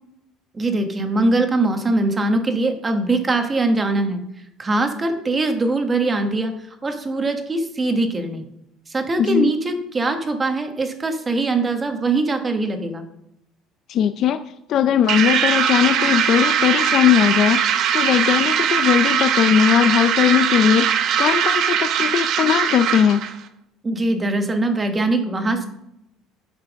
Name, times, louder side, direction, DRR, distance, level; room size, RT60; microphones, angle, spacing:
voice 1, 0.5-4.2 4.6-6.5 6.8-8.4 8.9-13.0 23.8-25.7, right 2 dB, 15° right, 6 dB, 1.2 m, -22 dB
voice 2, 9.2-9.5 13.9-14.4 14.7-17.6 17.9-20.9 21.2-23.2, left 9 dB, 45° left, 9 dB, 0.4 m, -18 dB
sound 1, 15.1-23.4, right 8 dB, 50° right, 0.8 m, -20 dB
10.0 x 5.7 x 6.2 m, 0.84 s
cardioid pair, 160°, 0 cm